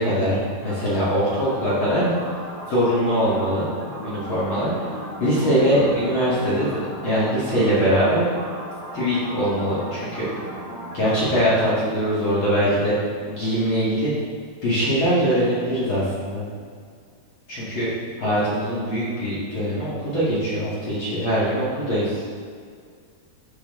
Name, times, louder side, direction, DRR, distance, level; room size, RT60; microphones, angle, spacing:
voice 1, 0.0-2.1 2.7-4.9 5.2-8.2 8.9-10.3 10.9-13.0 13.3-14.1 14.6-16.5 17.5-17.9 18.2-22.2, equal, 45° left, -10 dB, 1.9 m, -22 dB
sound 1, 0.6-11.7, right 1 dB, 70° right, 3.3 m, -36 dB
12.0 x 4.9 x 3.6 m, 2.1 s
omnidirectional pair, 4.5 m